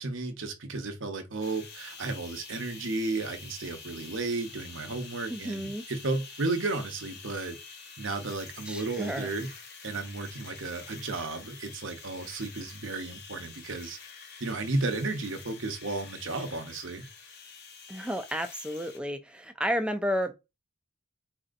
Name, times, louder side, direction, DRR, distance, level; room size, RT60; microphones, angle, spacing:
voice 1, 0.0-7.6 8.0-9.5 9.8-14.0 14.4-17.1, right 3 dB, 70° right, 0.8 m, -33 dB
sound 1, 1.4-19.0, left 5 dB, 55° left, 0.8 m, -47 dB
voice 2, 5.3-5.8 8.7-9.3 17.9-20.3, equal, 5° right, 0.4 m, -32 dB
4.3 x 2.7 x 2.5 m
head